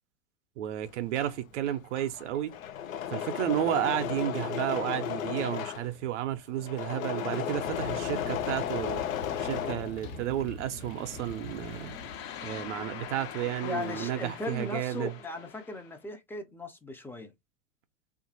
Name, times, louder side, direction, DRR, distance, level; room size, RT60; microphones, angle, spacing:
voice 1, 0.6-2.6 3.1-9.0 9.4-12.0 12.4-15.1, right 12 dB, 65° right, 0.6 m, -32 dB
Engine / Mechanisms, 0.9-10.5 10.8-13.2 13.4-14.2, left 9 dB, 85° left, 0.6 m, -35 dB
sound 1, 7.5-12.6, left 1 dB, 65° left, 1.3 m, -44 dB
sound 2, 10.5-16.0, left 9 dB, 45° left, 0.7 m, -43 dB
voice 2, 13.6-17.3, left 2 dB, 5° left, 0.4 m, -37 dB
2.8 x 2.5 x 2.6 m
hypercardioid pair, 95°, 39 cm